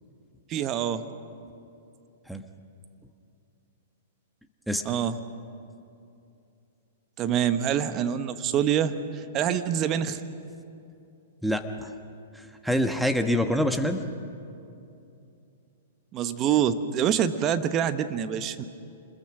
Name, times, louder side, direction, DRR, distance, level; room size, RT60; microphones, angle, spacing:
voice 1, 0.5-1.0 4.8-5.2 7.2-10.2 16.1-18.6, right 9 dB, 30° right, 11 dB, 1.1 m, -26 dB
voice 2, 11.4-11.9 12.3-14.0, equal, ahead, 7 dB, 1.3 m, -26 dB
26.5 x 21.0 x 6.1 m, 2.7 s
hypercardioid pair, 115°, 0 cm